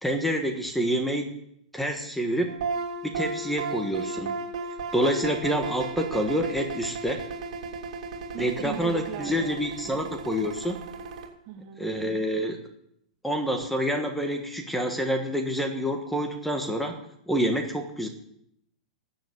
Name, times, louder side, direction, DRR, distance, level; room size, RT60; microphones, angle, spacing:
voice 1, 0.0-1.4 1.7-2.5 3.0-4.4 4.9-7.2 8.4-10.8 11.8-12.6 13.2-16.9 17.3-18.1, equal, ahead, 4 dB, 1.5 m, -27 dB
sound 1, 2.5-11.3, right 4 dB, 65° right, 3.2 m, -35 dB
voice 2, 8.3-9.6 9.9-10.1 11.5-11.9, right 9 dB, 40° right, 6 dB, 2.0 m, -38 dB
14.0 x 7.2 x 8.7 m, 0.74 s
hypercardioid pair, 140°, 4 cm